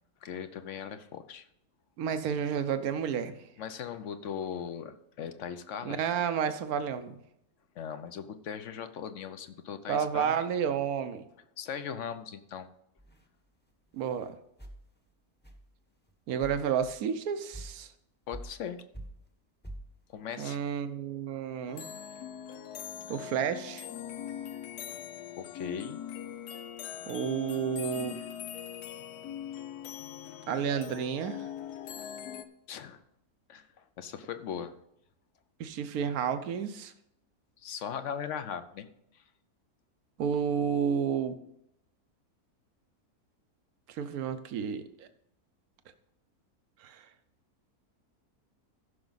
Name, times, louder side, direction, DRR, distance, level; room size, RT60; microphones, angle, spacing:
voice 1, 0.2-1.4 3.6-6.0 7.8-10.4 11.6-12.7 18.3-18.8 20.1-20.6 25.4-26.0 32.7-33.0 33.5-33.7 34.0-34.7 37.6-38.9, left 8 dB, 60° left, 10 dB, 1.0 m, -39 dB
voice 2, 2.0-3.3 5.8-7.1 9.9-11.2 13.9-14.3 16.3-17.9 20.4-21.9 23.1-23.9 27.1-28.2 30.5-31.4 35.6-36.9 40.2-41.4 44.0-45.1 46.8-47.0, right 7 dB, 75° right, 10 dB, 1.3 m, -31 dB
sound 1, 13.0-13.2 13.9-14.3 14.6-14.8 15.4-15.6 16.1-16.2 16.4-17.0 17.5-17.8 18.3-18.7 18.9-19.3 19.6-19.9, right 1 dB, 10° left, 0.8 m, -45 dB
sound 2, 21.7-32.4, left 9 dB, 80° left, 1.2 m, -41 dB
14.5 x 6.0 x 4.0 m, 0.78 s
omnidirectional pair, 1.6 m